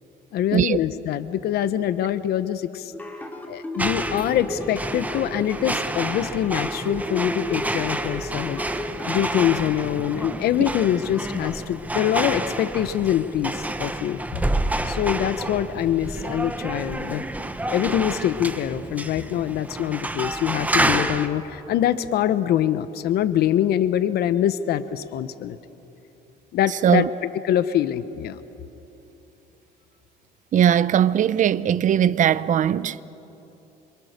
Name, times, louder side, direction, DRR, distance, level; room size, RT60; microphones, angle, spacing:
voice 1, 0.3-2.9 3.5-8.6 9.1-14.2 14.8-17.2 17.7-25.6 26.5-27.1 27.4-28.4, left 11 dB, 70° left, 0.9 m, -24 dB
sound 1, 2.9-9.5, left 1 dB, 10° left, 3.8 m, -34 dB
sound 2, 3.8-21.3, right 1 dB, 10° right, 1.3 m, -29 dB
voice 2, 30.5-33.0, right 9 dB, 50° right, 0.7 m, -19 dB
28.0 x 25.5 x 6.7 m
cardioid pair, 110°, 17 cm